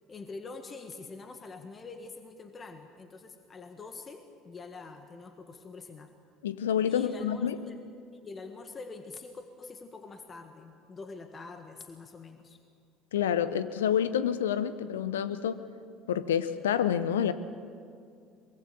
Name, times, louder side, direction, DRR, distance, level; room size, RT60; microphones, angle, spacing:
voice 1, 0.1-6.1 6.9-7.8 8.1-12.6, left 3 dB, 30° left, 6 dB, 1.7 m, -45 dB
voice 2, 6.4-7.6 13.1-15.7 16.1-17.3, left 9 dB, 75° left, 13 dB, 0.9 m, -28 dB
23.5 x 22.5 x 7.0 m, 2.3 s
figure-of-eight pair, 65°, 0 cm